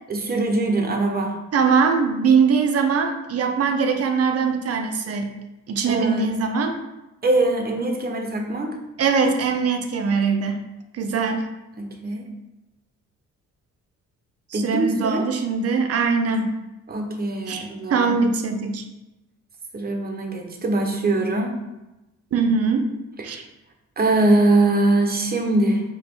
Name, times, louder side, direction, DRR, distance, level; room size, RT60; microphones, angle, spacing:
voice 1, 0.1-1.3 5.8-6.3 7.2-8.8 11.8-12.2 14.5-15.2 16.9-18.2 19.7-21.6 23.2-23.3 24.0-25.8, right 2 dB, 30° right, 3 dB, 0.9 m, -22 dB
voice 2, 1.5-5.3 5.7-6.8 9.0-10.6 11.0-11.4 14.5-16.5 17.5-17.6 17.9-18.8 22.3-22.9 23.2-23.4, right 5 dB, 55° right, 6 dB, 0.6 m, -21 dB
4.7 x 2.9 x 3.6 m, 0.99 s
cardioid pair, 90°, 30 cm